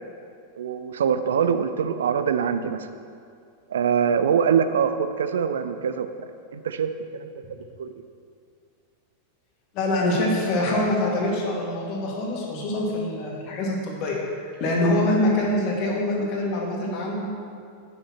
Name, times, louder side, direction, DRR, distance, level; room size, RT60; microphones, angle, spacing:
voice 1, 0.6-2.9 3.7-6.1 6.5-7.9, right 7 dB, 65° right, 10 dB, 0.4 m, -24 dB
voice 2, 9.7-17.3, left 1 dB, 40° left, -3 dB, 2.1 m, -25 dB
10.5 x 9.0 x 3.1 m, 2.3 s
figure-of-eight pair, 90°, 0 cm